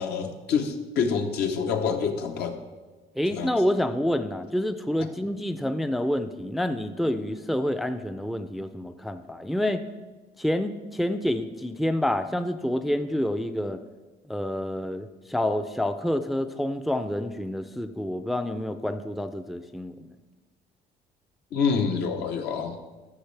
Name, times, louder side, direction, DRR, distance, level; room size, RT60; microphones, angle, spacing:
voice 1, 0.0-2.6 3.3-3.5 21.5-22.8, left 6 dB, 75° left, 5 dB, 1.0 m, -27 dB
voice 2, 3.2-9.8 10.4-13.8 14.3-20.1, left 1 dB, ahead, 9 dB, 0.4 m, -28 dB
14.0 x 6.2 x 3.3 m, 1.3 s
cardioid pair, 110°, 17 cm